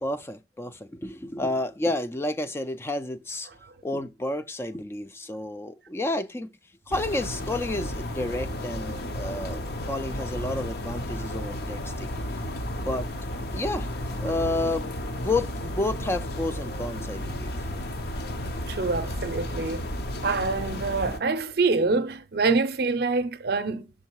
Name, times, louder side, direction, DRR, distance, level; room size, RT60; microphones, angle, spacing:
voice 1, 0.0-3.5 3.8-6.5 6.9-12.1 12.8-13.1 13.5-17.7, left 2 dB, 15° left, 0.3 m, -31 dB
sound 1, 6.9-21.2, left 1 dB, 55° left, 0.8 m, -33 dB
voice 2, 18.7-19.9 20.2-23.8, right 3 dB, 55° right, 0.6 m, -26 dB
6.4 x 3.6 x 4.6 m
head